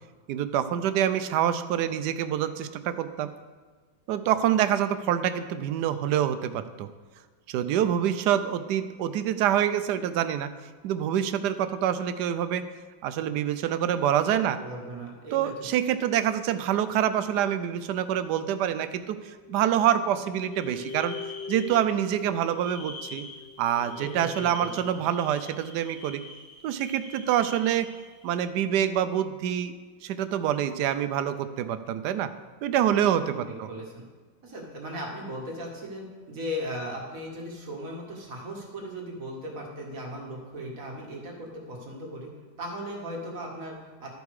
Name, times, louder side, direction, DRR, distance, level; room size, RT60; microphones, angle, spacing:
voice 1, 0.3-3.3 4.1-6.9 7.5-10.5 10.8-12.7 13.0-14.6 15.3-21.2 21.5-23.3 23.6-26.2 26.6-27.9 28.2-29.7 30.0-32.3 32.6-33.7, right 10 dB, 75° right, 11 dB, 1.1 m, -26 dB
voice 2, 14.2-15.5 24.0-24.7 25.0-25.1 33.1-33.4 33.7-34.0 34.4-42.3 42.6-44.1, equal, 50° right, -2 dB, 2.0 m, -37 dB
sound 1, 19.3-25.0, left 5 dB, 80° left, 2.1 m, -43 dB
sound 2, 20.5-22.1 22.4-28.4, left 3 dB, 65° left, 2.5 m, -46 dB
12.5 x 5.3 x 4.7 m, 1.5 s
omnidirectional pair, 2.0 m